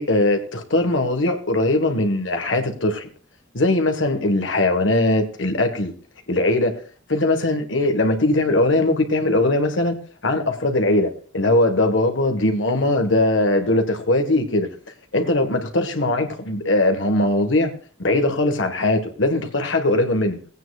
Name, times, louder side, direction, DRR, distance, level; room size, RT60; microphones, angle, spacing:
voice 1, 0.0-3.1 3.5-5.9 6.3-6.8 7.1-10.0 10.2-14.7 15.1-17.7 18.0-20.4, left 2 dB, 70° left, 5 dB, 1.6 m, -20 dB
18.5 x 9.0 x 2.5 m, 0.42 s
head